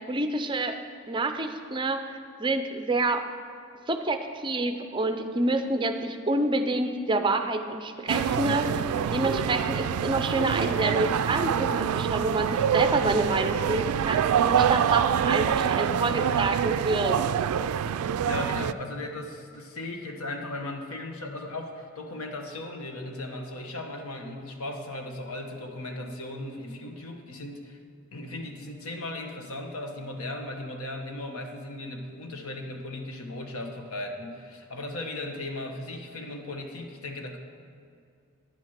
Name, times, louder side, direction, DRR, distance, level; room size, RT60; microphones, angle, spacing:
voice 1, 0.1-0.8 1.1-3.2 3.9-8.8 9.1-17.2, right 2 dB, 20° right, 7 dB, 0.5 m, -28 dB
sound 1, 8.1-18.7, right 8 dB, 80° right, 0.3 m, -26 dB
voice 2, 18.2-27.8 28.1-37.4, left 2 dB, 75° left, 3 dB, 1.2 m, -37 dB
10.5 x 7.7 x 5.8 m, 2.3 s
head